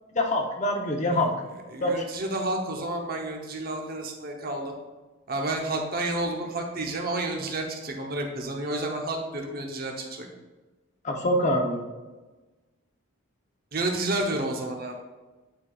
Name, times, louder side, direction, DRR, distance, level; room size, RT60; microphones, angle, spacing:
voice 1, 0.1-1.3 1.8-1.9 11.0-11.8, left 1 dB, 35° left, 1 dB, 0.8 m, -24 dB
voice 2, 1.1-4.7 5.3-10.3 13.7-15.0, right 2 dB, 45° right, 2 dB, 0.9 m, -30 dB
9.4 x 4.7 x 2.4 m, 1.2 s
head